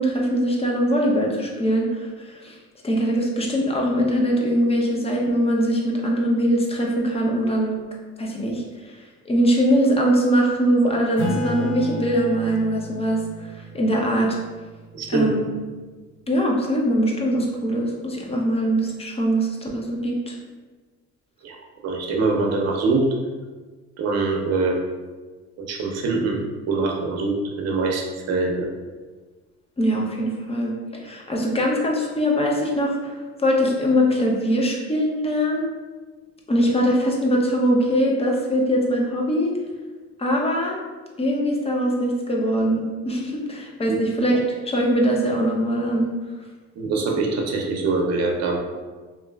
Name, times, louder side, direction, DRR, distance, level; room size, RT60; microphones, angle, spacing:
voice 1, 0.0-2.5 2.8-7.8 8.2-8.6 9.3-13.2 13.7-14.4 15.1-15.5 16.3-20.4 29.8-33.1 33.4-35.7 36.5-39.5 40.2-40.8 41.2-46.1, equal, 20° left, -1 dB, 0.6 m, -22 dB
Acoustic guitar / Strum, 11.2-16.2, equal, 75° left, 1.1 m, -33 dB
voice 2, 14.9-15.3 21.4-21.6 21.8-23.0 24.0-24.7 25.6-26.4 26.7-28.7 43.9-44.0 46.8-48.6, right 3 dB, 60° right, 1 dB, 0.6 m, -23 dB
3.0 x 2.5 x 2.3 m, 1.3 s
cardioid pair, 90°, 30 cm